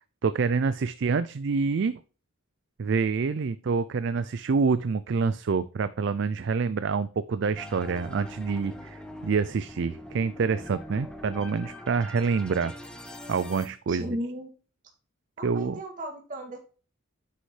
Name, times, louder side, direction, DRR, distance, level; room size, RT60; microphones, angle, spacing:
voice 1, 0.2-2.0 2.8-12.7 13.3-14.2 15.4-15.8, right 5 dB, 60° right, 14 dB, 0.4 m, -27 dB
sound 1, 7.6-13.7, left 1 dB, 5° left, 1.0 m, -42 dB
voice 2, 13.9-14.5 15.4-16.6, equal, 40° right, -1 dB, 2.3 m, -35 dB
9.6 x 6.4 x 3.2 m, 0.38 s
head